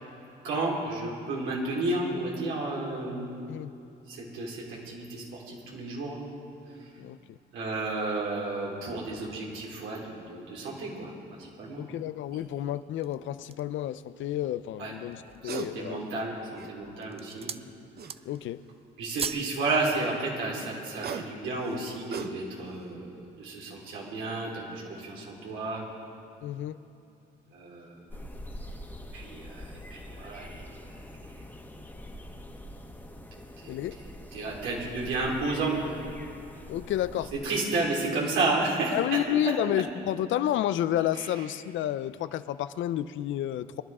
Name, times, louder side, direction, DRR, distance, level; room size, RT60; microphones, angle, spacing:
voice 1, 0.4-3.5 4.1-6.2 7.5-11.1 11.4-11.8 12.3-12.4 14.8-14.9 15.4-17.5 19.0-23.1 23.4-25.8 27.5-28.0 29.1-30.8 33.6-36.0 37.2-39.2 41.1-41.5, right 2 dB, 90° right, -4 dB, 3.9 m, -32 dB
voice 2, 7.0-7.4 11.8-16.0 18.3-18.6 26.4-26.8 33.7-34.0 36.7-37.3 38.1-38.2 38.9-43.8, left 12 dB, 75° left, 14 dB, 0.5 m, -30 dB
sound 1, 12.3-12.5 15.2-15.7 16.1-17.0 18.0-18.6 20.7-22.7 23.2-23.4, right 6 dB, 55° right, 0.9 m, -40 dB
sound 2, 12.8-13.8 14.4-14.5 15.0-15.5 16.2-16.6 16.9-17.7 18.0-18.5 18.8-19.5 19.9-20.0, right 6 dB, 30° right, 0.4 m, -38 dB
sound 3, 28.1-37.4, left 1 dB, 10° left, 1.6 m, -44 dB
24.0 x 11.5 x 3.7 m, 2.7 s
cardioid pair, 90°, 20 cm